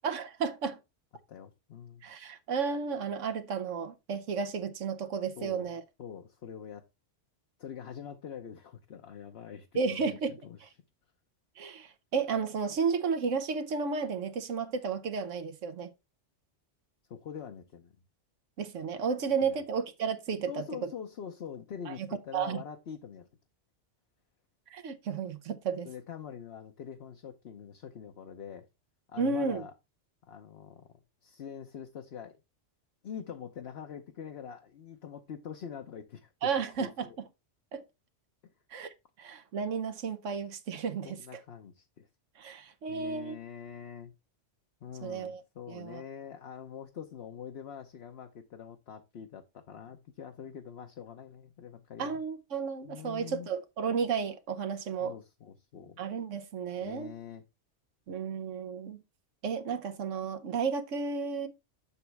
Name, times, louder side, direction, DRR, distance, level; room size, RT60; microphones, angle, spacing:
voice 1, 0.0-0.8 2.0-5.8 9.7-10.7 11.6-15.9 18.6-20.9 21.9-22.1 22.3-22.6 24.7-25.9 29.2-29.6 36.4-37.2 37.7-37.8 38.7-38.9 39.2-41.4 42.4-43.3 45.0-45.4 45.7-46.0 52.0-55.2 56.0-57.1 58.1-59.0 59.4-61.5, right 5 dB, 85° right, 1.2 m, -33 dB
voice 2, 1.3-2.0 5.4-5.7 6.0-6.8 7.6-10.6 17.1-17.9 19.4-19.6 20.5-23.3 25.8-28.7 29.1-29.7 30.3-32.4 33.0-36.5 36.8-37.2 41.0-42.1 42.9-44.1 44.8-52.2 52.8-53.5 55.0-56.0 56.8-57.4, left 8 dB, 60° left, 1.0 m, -44 dB
7.2 x 7.1 x 3.3 m
omnidirectional pair, 1.2 m